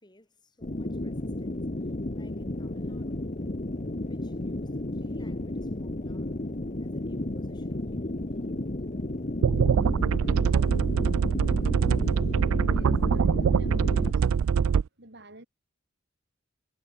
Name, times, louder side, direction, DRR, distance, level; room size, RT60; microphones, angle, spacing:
voice 1, 0.0-1.7 2.1-3.4 4.0-6.4 6.8-8.4, left 1 dB, 20° left, 5.9 m, -58 dB
sound 1, 0.6-14.1, left 1 dB, 35° left, 1.2 m, -33 dB
sound 2, 9.4-14.8, right 7 dB, 90° right, 0.4 m, -23 dB
voice 2, 12.6-14.2 15.0-15.5, right 1 dB, 55° right, 6.2 m, -49 dB
head